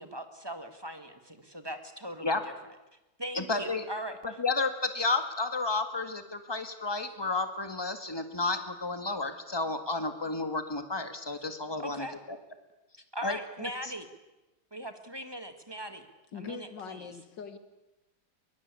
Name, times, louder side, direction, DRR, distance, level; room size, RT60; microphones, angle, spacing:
voice 1, 0.0-2.5 3.2-4.4 11.8-12.2 13.1-14.1 14.7-16.1 16.3-17.1, right 1 dB, 15° right, 8 dB, 1.9 m, -40 dB
voice 2, 3.4-3.9 4.2-12.4 13.2-13.7, left 3 dB, 15° left, 8 dB, 1.9 m, -32 dB
voice 3, 16.3-17.6, left 6 dB, 85° left, 9 dB, 2.3 m, -42 dB
23.0 x 22.5 x 8.5 m, 1.0 s
omnidirectional pair, 1.9 m